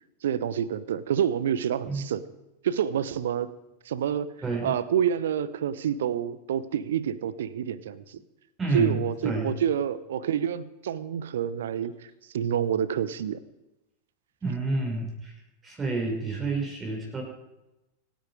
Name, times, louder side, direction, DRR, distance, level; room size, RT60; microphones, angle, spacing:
voice 1, 0.2-2.2 2.6-3.5 3.9-8.2 8.7-12.0 12.3-13.4, right 9 dB, 60° right, 17 dB, 0.9 m, -28 dB
voice 2, 4.4-4.7 8.6-9.5 14.4-15.3 15.6-17.2, right 3 dB, 15° right, 0 dB, 5.4 m, -29 dB
26.0 x 9.5 x 4.9 m, 0.98 s
figure-of-eight pair, 90°, 0 cm